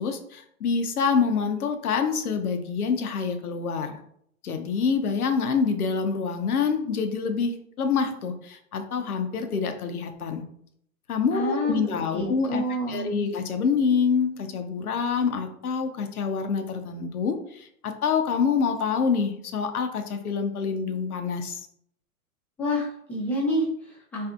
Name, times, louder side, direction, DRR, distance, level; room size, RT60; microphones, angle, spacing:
voice 1, 0.0-3.9 4.4-10.4 11.1-12.6 12.9-21.6, left 5 dB, 85° left, 7 dB, 0.5 m, -26 dB
voice 2, 11.3-11.8 12.1-13.2 22.6-24.3, equal, 5° left, -6 dB, 0.4 m, -28 dB
2.5 x 2.4 x 2.3 m, 0.70 s
figure-of-eight pair, 105°, 43 cm